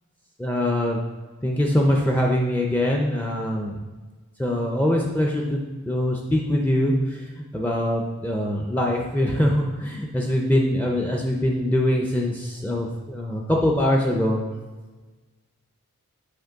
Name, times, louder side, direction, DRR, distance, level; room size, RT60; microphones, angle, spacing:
voice 1, 0.4-1.0 1.4-3.8 4.4-7.2 7.5-14.4, left 1 dB, 10° left, 0 dB, 0.4 m, -23 dB
6.5 x 4.2 x 3.5 m, 1.3 s
head